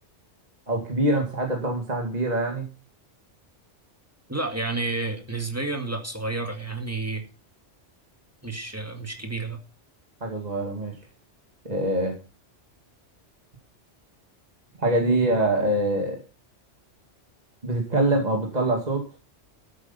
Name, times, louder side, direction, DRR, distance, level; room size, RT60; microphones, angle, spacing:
voice 1, 0.7-2.7 10.2-10.9 11.6-12.1 14.8-16.2 17.6-19.0, right 1 dB, 35° right, 1 dB, 2.4 m, -24 dB
voice 2, 4.3-7.2 8.4-9.6, right 3 dB, 10° right, 4 dB, 2.1 m, -30 dB
13.0 x 8.6 x 5.7 m, 0.34 s
omnidirectional pair, 1.2 m